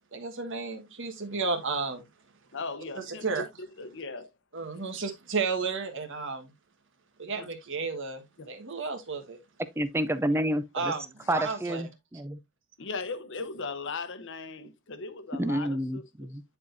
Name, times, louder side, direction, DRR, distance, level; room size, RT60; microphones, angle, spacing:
voice 1, 0.1-2.0 2.9-3.5 4.5-6.5 7.2-9.4 10.7-11.8, right 4 dB, 55° right, 1.5 m, -33 dB
voice 2, 2.5-3.5 3.8-4.3 7.3-7.5 8.4-8.5 12.8-16.3, left 4 dB, 55° left, 0.9 m, -38 dB
voice 3, 9.8-10.9 11.3-12.4 15.3-16.4, right 1 dB, 10° right, 0.5 m, -29 dB
9.6 x 4.7 x 2.6 m
head